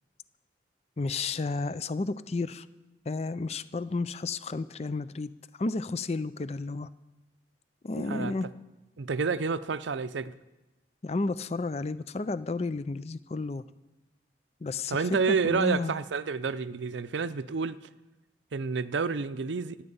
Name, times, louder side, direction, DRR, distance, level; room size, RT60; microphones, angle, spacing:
voice 1, 1.0-2.7 3.1-5.3 5.6-6.9 7.8-8.4 11.0-13.6 14.6-16.0, left 3 dB, 35° left, 0.4 m, -32 dB
voice 2, 8.0-8.3 9.0-10.3 14.9-17.8 18.5-19.8, right 5 dB, 85° right, 0.6 m, -29 dB
25.0 x 8.8 x 5.5 m
head